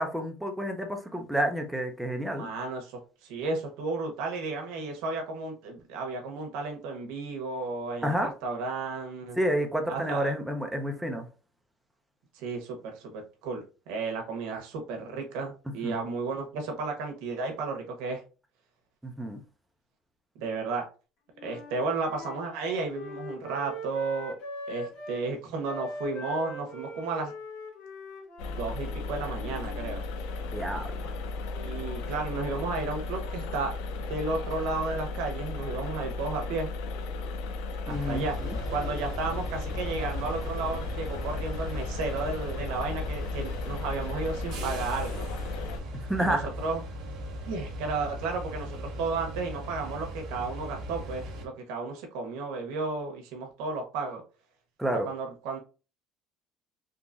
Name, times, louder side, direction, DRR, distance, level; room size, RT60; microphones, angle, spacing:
voice 1, 0.0-2.5 8.0-8.3 9.4-11.3 15.8-16.0 19.0-19.4 30.5-31.1 37.9-38.6 45.9-46.5 54.8-55.1, equal, 5° right, 4 dB, 0.5 m, -30 dB
voice 2, 2.4-9.4 9.9-10.3 12.3-18.2 20.4-20.9 21.4-24.3 24.7-27.3 28.5-30.0 31.5-36.7 37.9-38.4 38.7-45.3 46.2-46.8 47.5-54.2 54.9-55.6, right 3 dB, 80° right, 3 dB, 0.9 m, -33 dB
Wind instrument woodwind instrument, 21.4-25.3 25.6-30.0, left 1 dB, 70° left, 1.7 m, -42 dB
sound 1, 28.4-45.8, left 3 dB, 90° left, 0.5 m, -35 dB
sound 2, 37.9-51.4, equal, 50° right, 1.0 m, -38 dB
3.8 x 2.9 x 2.5 m, 0.34 s
cardioid pair, 160°, 0 cm